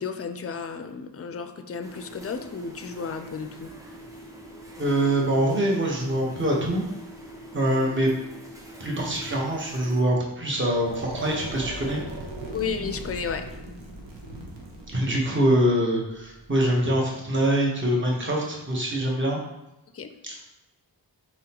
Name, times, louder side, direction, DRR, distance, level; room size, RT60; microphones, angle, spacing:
voice 1, 0.0-3.7 12.5-13.4 19.9-20.1, left 5 dB, 35° left, 8 dB, 0.4 m, -33 dB
sound 1, 1.8-10.1, right 1 dB, 10° right, 0.8 m, -44 dB
voice 2, 4.8-6.9 7.5-8.1 8.8-12.0 14.9-19.4 20.2-20.3, right 1 dB, 25° right, -2 dB, 1.1 m, -24 dB
sound 2, 10.6-16.6, right 2 dB, 90° right, 0.9 m, -39 dB
4.2 x 3.8 x 2.9 m, 0.96 s
wide cardioid pair, 55°, 43 cm